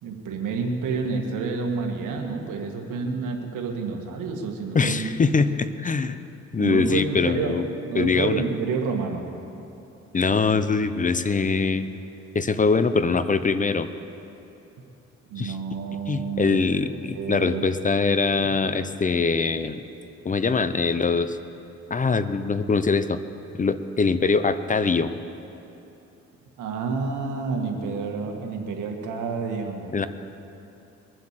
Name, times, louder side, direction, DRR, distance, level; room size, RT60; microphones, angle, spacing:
voice 1, 0.0-5.1 6.6-9.3 15.3-17.6 18.4-18.5 26.6-29.9, right 5 dB, 85° right, 2 dB, 1.9 m, -29 dB
voice 2, 4.7-6.2 6.5-7.7 7.9-8.4 10.1-12.0 12.3-13.9 15.4-15.6 16.1-19.8 20.2-21.4 21.9-23.2 23.6-25.1 29.9-30.1, left 4 dB, 25° left, 12 dB, 0.7 m, -23 dB
22.5 x 7.8 x 7.5 m, 2.9 s
cardioid pair, 90°, 30 cm